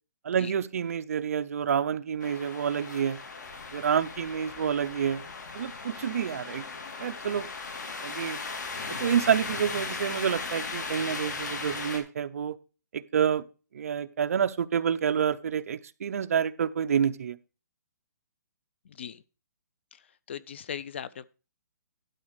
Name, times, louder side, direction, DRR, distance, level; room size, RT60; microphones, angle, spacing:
voice 1, 0.2-3.2 3.7-5.2 5.5-6.6 7.0-7.5 8.0-8.4 8.9-12.6 12.9-13.5 13.7-17.4, right 8 dB, 55° right, 0.7 m, -28 dB
sound 1, 2.2-12.0, left 4 dB, 70° left, 2.6 m, -37 dB
voice 2, 18.9-19.2 19.9-20.0 20.3-21.2, left 8 dB, 40° left, 0.4 m, -38 dB
12.0 x 4.1 x 6.5 m
hypercardioid pair, 170°, 10 cm